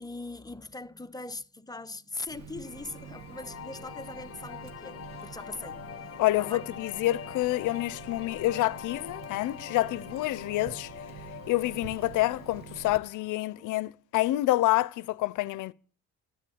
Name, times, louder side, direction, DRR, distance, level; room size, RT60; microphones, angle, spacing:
voice 1, 0.0-5.8 6.4-6.6 13.6-13.7, left 2 dB, 15° left, 0.8 m, -41 dB
Water tap faucet, 2.3-13.0, right 7 dB, 65° right, 1.3 m, -47 dB
sound 1, 2.6-13.7, left 10 dB, 50° left, 0.7 m, -45 dB
voice 2, 6.2-10.9 11.5-15.7, left 17 dB, 85° left, 0.6 m, -28 dB
13.5 x 9.9 x 8.7 m
cardioid pair, 90°, 30 cm